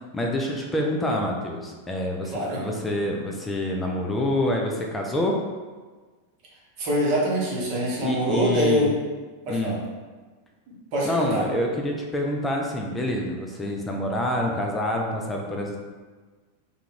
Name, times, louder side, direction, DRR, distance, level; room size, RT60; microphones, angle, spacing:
voice 1, 0.1-5.4 8.0-8.9 9.5-9.8 11.0-15.8, left 1 dB, 15° left, 0 dB, 0.3 m, -27 dB
voice 2, 2.2-2.7 6.8-8.9 9.5-9.8 10.7-11.5, equal, 45° right, -4 dB, 0.8 m, -24 dB
2.3 x 2.3 x 3.1 m, 1.4 s
figure-of-eight pair, 90°, 0 cm